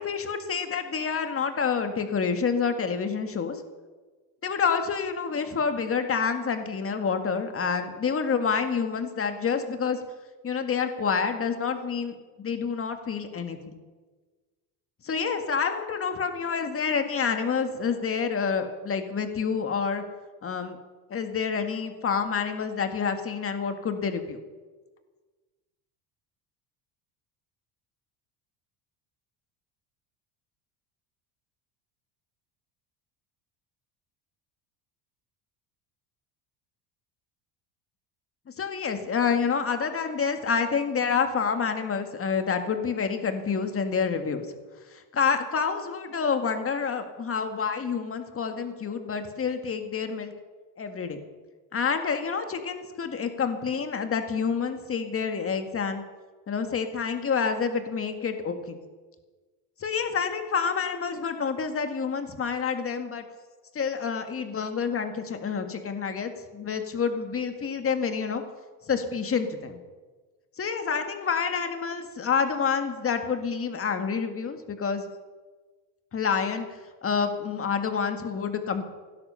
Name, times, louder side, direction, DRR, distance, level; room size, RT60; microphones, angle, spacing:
voice 1, 0.0-3.6 4.4-10.0 10.4-13.8 15.0-20.0 20.4-20.8 21.1-24.4 38.6-44.5 44.9-50.3 50.8-51.2 51.7-56.0 56.5-58.8 59.8-63.2 63.7-68.4 68.9-69.8 70.6-75.1 76.1-76.7 77.0-78.9, left 6 dB, 30° left, 7 dB, 1.9 m, -28 dB
17.0 x 12.0 x 5.8 m, 1.3 s
cardioid pair, 115°, 45 cm